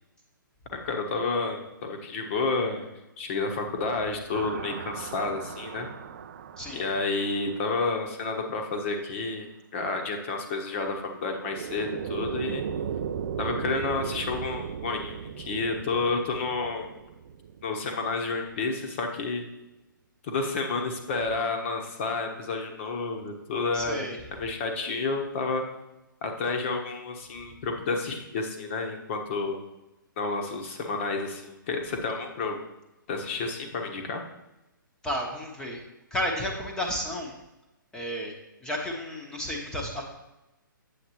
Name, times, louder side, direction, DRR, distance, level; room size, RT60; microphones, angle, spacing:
voice 1, 0.7-2.9 3.2-5.9 6.7-12.6 13.4-16.9 17.6-19.4 20.2-24.1 24.4-25.6 26.2-29.6 30.2-32.6 33.1-34.2, left 3 dB, 35° left, 3 dB, 1.1 m, -30 dB
sound 1, 4.3-8.2 11.3-18.4, right 8 dB, 40° right, 0.4 m, -37 dB
voice 2, 23.7-24.2 35.0-35.8 36.1-37.3 37.9-38.3 38.6-40.0, equal, 5° left, 0 dB, 1.0 m, -32 dB
8.2 x 7.7 x 3.0 m, 0.98 s
figure-of-eight pair, 130°, 11 cm